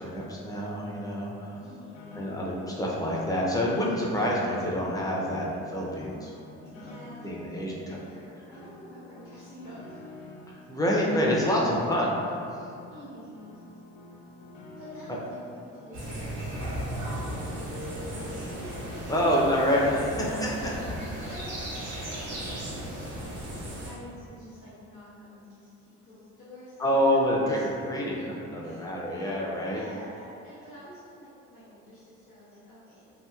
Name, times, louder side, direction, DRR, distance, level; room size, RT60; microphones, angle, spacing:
voice 1, 0.0-1.5 2.2-6.3 6.6-7.0 7.2-8.0 10.5-12.1 15.1-15.2 19.1-20.8 21.2-21.3 26.8-28.2 28.5-29.8, equal, 10° left, -4 dB, 0.5 m, -27 dB
Piano, 0.7-19.9, left 2 dB, 70° left, 0.5 m, -49 dB
voice 2, 1.6-2.2 6.7-10.1 11.4-12.0 12.9-13.5 14.8-20.8 21.2-28.8 29.2-29.3 29.7-33.2, equal, 85° left, -14 dB, 0.9 m, -47 dB
sound 1, 15.9-23.9, right 1 dB, 85° right, 0.9 m, -36 dB
2.9 x 2.6 x 2.3 m, 2.6 s
cardioid pair, 90°, 30 cm